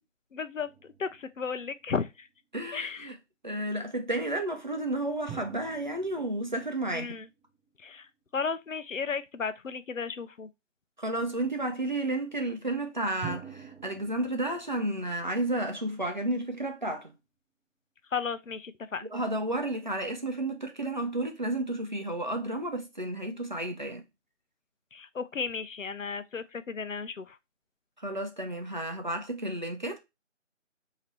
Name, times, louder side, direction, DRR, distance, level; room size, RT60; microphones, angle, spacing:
voice 1, 0.3-2.3 2.7-3.2 6.9-7.3 7.8-8.1 8.3-10.5 18.1-19.1 24.9-27.4, left 5 dB, 85° left, 0.6 m, -34 dB
sound 1, 0.6-2.3 5.3-8.0 13.2-16.2, right 7 dB, 10° left, 1.1 m, -47 dB
voice 2, 2.5-3.1 3.4-7.1 11.0-17.1 19.1-24.0 28.0-30.0, right 1 dB, 40° right, 0.6 m, -32 dB
4.3 x 2.8 x 3.1 m
figure-of-eight pair, 165°, 38 cm